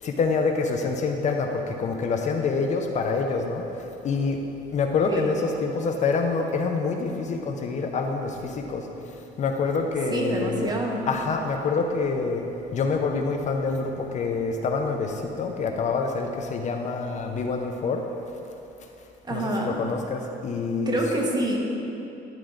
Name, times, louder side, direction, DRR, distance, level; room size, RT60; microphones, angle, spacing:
voice 1, 0.0-3.6 4.0-4.4 4.7-8.8 9.4-10.7 11.1-12.4 12.7-18.0 19.3-21.0, left 4 dB, 45° left, 3 dB, 0.6 m, -26 dB
voice 2, 10.1-11.0 19.3-19.8 20.9-21.6, right 1 dB, 25° right, 0 dB, 1.1 m, -27 dB
10.5 x 4.5 x 3.8 m, 2.9 s
cardioid pair, 110°, 17 cm